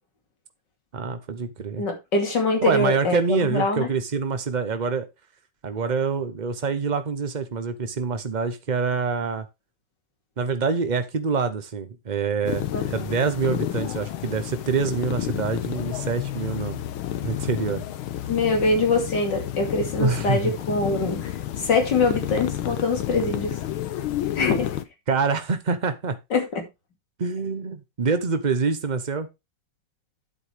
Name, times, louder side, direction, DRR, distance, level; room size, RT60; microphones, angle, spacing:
voice 1, 0.9-1.8 2.6-5.1 5.6-9.5 10.4-16.8 17.2-17.8 20.0-20.5 25.1-26.1 27.2-29.3, right 5 dB, 80° right, 0.4 m, -26 dB
voice 2, 1.8-3.9 12.7-12.9 18.3-23.6 24.3-24.7 26.3-26.7, left 3 dB, 55° left, 3.0 m, -24 dB
sound 1, 12.4-24.8, left 12 dB, 90° left, 1.7 m, -30 dB
9.5 x 8.2 x 3.4 m
omnidirectional pair, 2.3 m